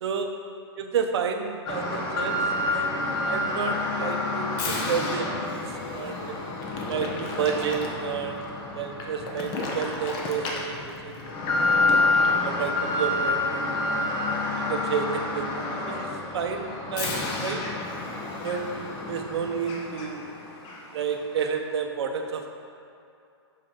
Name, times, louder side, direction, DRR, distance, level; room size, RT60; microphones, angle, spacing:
voice 1, 0.0-0.3 0.8-6.3 6.9-8.4 8.7-11.9 12.4-13.8 14.5-17.6 18.4-20.3 20.9-22.5, right 6 dB, 65° right, 4 dB, 0.8 m, -31 dB
Alarm, 1.7-20.3 20.6-20.8 21.4-21.5, left 2 dB, 30° left, 1.0 m, -28 dB
5.5 x 5.5 x 5.3 m, 2.6 s
hypercardioid pair, 140°, 15 cm